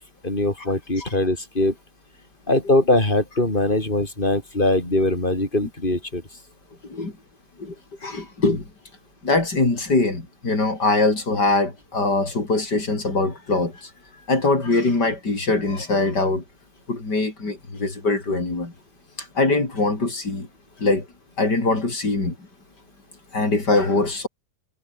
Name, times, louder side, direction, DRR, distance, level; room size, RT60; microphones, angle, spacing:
voice 1, 0.2-1.7 2.5-6.2, left 2 dB, 30° left, 6.3 m, -21 dB
voice 2, 8.0-8.7 9.2-13.9 14.3-16.4 16.9-18.7 19.2-20.5 20.8-21.1 21.4-22.3 23.3-24.3, left 3 dB, 85° left, 5.9 m, -22 dB
omnidirectional pair, 1.8 m